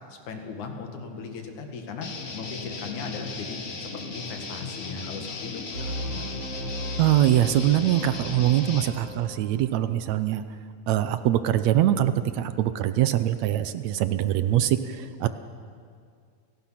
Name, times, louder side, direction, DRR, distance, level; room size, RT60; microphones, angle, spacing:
voice 1, 0.1-6.3, left 4 dB, 75° left, 4 dB, 3.3 m, -38 dB
Guitar, 2.0-8.9, left 4 dB, 45° left, 1.1 m, -36 dB
sound 1, 5.7-9.7, right 1 dB, 50° right, 4.5 m, -37 dB
voice 2, 7.0-10.4 10.9-15.3, right 12 dB, 75° right, 11 dB, 1.9 m, -23 dB
29.5 x 18.0 x 5.8 m, 2.1 s
omnidirectional pair, 3.5 m